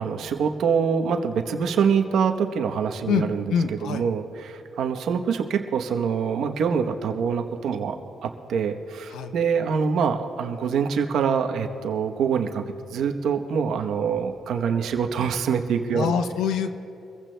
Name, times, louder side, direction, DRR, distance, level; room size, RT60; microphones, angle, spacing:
voice 1, 0.0-3.5 3.8-8.0 8.2-12.6 12.9-16.2, right 6 dB, 70° right, 5 dB, 0.9 m, -25 dB
voice 2, 3.1-4.0 9.1-9.3 15.9-16.7, left 7 dB, 80° left, 9 dB, 0.7 m, -25 dB
24.5 x 15.0 x 2.3 m, 2.7 s
cardioid pair, 90°, 0 cm